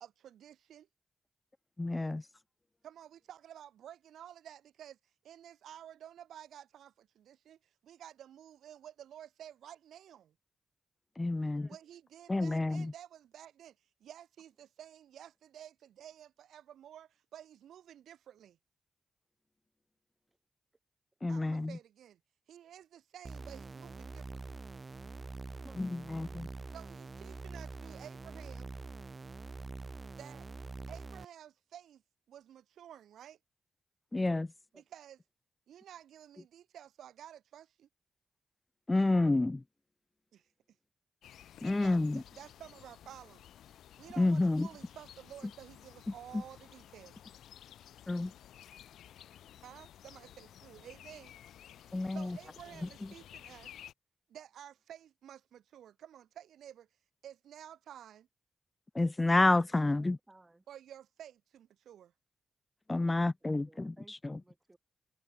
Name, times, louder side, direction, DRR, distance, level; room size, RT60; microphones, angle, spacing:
voice 1, 0.0-0.9 2.8-5.0 5.2-10.3 11.7-13.7 14.0-18.6 21.3-22.2 22.5-24.6 26.7-28.7 30.1-30.5 30.9-32.0 32.3-33.4 34.7-35.2 35.7-37.9 40.3-40.5 41.3-43.4 44.0-47.2 49.6-51.3 52.1-53.7 54.3-56.9 57.2-58.3 60.7-62.1, right 10 dB, 85° right, 1.1 m, -52 dB
voice 2, 1.8-2.2 11.2-11.7 12.3-12.8 21.2-21.7 25.8-26.5 34.1-34.5 38.9-39.6 41.6-42.2 44.2-44.7 48.1-48.3 51.9-52.2 59.0-60.2 62.9-64.4, left 2 dB, 30° left, 0.3 m, -29 dB
voice 3, 11.4-11.8 20.3-20.4 25.6-25.9 34.7-34.8 41.9-42.1 52.4-53.0 59.6-60.6 63.4-64.8, right 2 dB, 25° right, 6.5 m, -61 dB
sound 1, 23.2-31.2, right 3 dB, 40° right, 0.4 m, -45 dB
sound 2, 41.2-53.9, left 11 dB, 90° left, 1.6 m, -54 dB
supercardioid pair, 45°, 0 cm